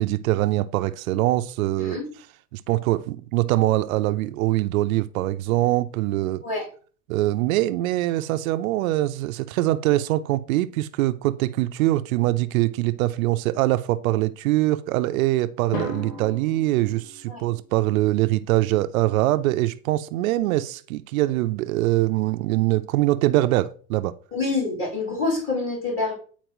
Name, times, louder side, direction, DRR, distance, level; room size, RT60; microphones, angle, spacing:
voice 1, 0.0-2.0 2.5-6.4 7.1-24.1, right 16 dB, 60° right, 0.6 m, -23 dB
Drum, 15.7-17.7, left 2 dB, 60° left, 2.2 m, -36 dB
voice 2, 24.3-26.1, left 3 dB, 25° left, 2.8 m, -26 dB
9.2 x 4.3 x 3.0 m
supercardioid pair, 130°, 46 cm